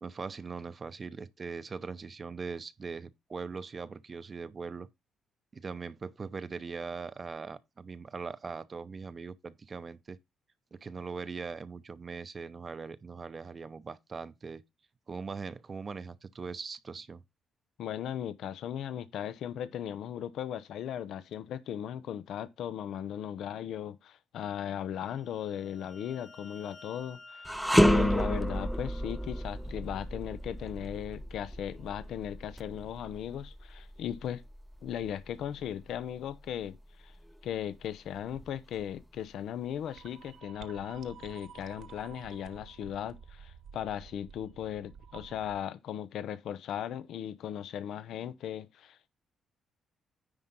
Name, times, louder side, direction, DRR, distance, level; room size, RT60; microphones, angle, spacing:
voice 1, 0.0-4.9 5.5-10.2 10.7-14.6 15.1-17.2, right 5 dB, 35° right, 0.7 m, -40 dB
voice 2, 17.8-34.4 34.8-37.1 37.4-49.1, left 10 dB, 75° left, 0.7 m, -37 dB
sound 1, 25.1-29.5, left 3 dB, 35° left, 1.2 m, -53 dB
sound 2, 27.4-36.7 37.1-37.3 38.2-39.0, equal, ahead, 0.4 m, -31 dB
sound 3, 39.8-45.6, right 7 dB, 70° right, 1.1 m, -51 dB
9.9 x 3.8 x 5.5 m
cardioid pair, 90°, 0 cm